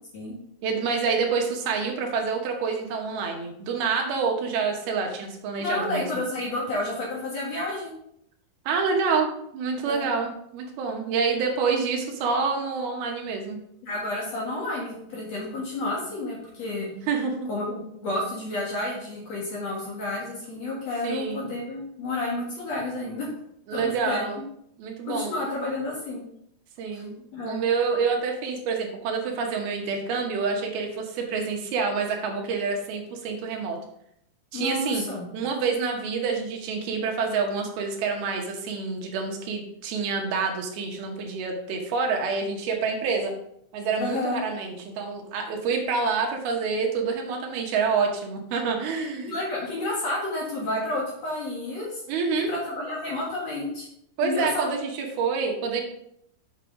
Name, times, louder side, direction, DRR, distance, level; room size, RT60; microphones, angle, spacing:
voice 1, 0.6-6.1 8.7-13.6 17.1-17.5 21.0-21.5 23.7-24.4 24.8-25.3 26.8-27.1 27.5-33.8 34.5-35.0 35.3-43.3 43.7-49.3 52.1-52.5 54.2-54.9 55.2-55.8, right 5 dB, 75° right, 2 dB, 2.9 m, -27 dB
voice 2, 5.6-7.9 9.9-10.1 13.8-16.9 17.5-23.3 23.7-24.2 25.1-26.2 26.9-27.0 27.3-27.6 34.5-35.3 44.0-44.4 49.2-52.0 52.3-53.9 54.2-54.7, left 2 dB, 55° left, -4 dB, 2.3 m, -30 dB
7.5 x 5.9 x 3.7 m, 0.73 s
omnidirectional pair, 4.5 m